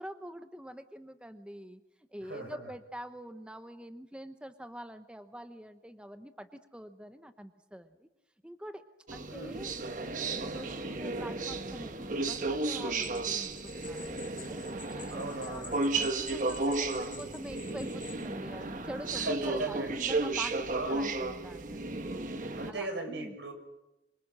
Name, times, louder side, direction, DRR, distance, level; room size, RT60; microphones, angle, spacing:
voice 1, 0.0-1.8 2.1-8.1 8.4-9.8 10.1-14.6 14.9-15.6 15.9-22.3 22.7-23.4, equal, 5° right, 9 dB, 0.8 m, -45 dB
voice 2, 2.2-2.7 9.3-9.6 15.1-16.0 16.9-17.3 19.1-20.0 20.7-21.0 22.6-23.5, right 2 dB, 85° right, 4 dB, 6.8 m, -38 dB
sound 1, 9.1-22.7, right 3 dB, 45° right, 1.3 m, -34 dB
sound 2, 13.0-18.2, left 5 dB, 30° left, 5.0 m, -50 dB
26.0 x 24.0 x 6.3 m, 0.95 s
head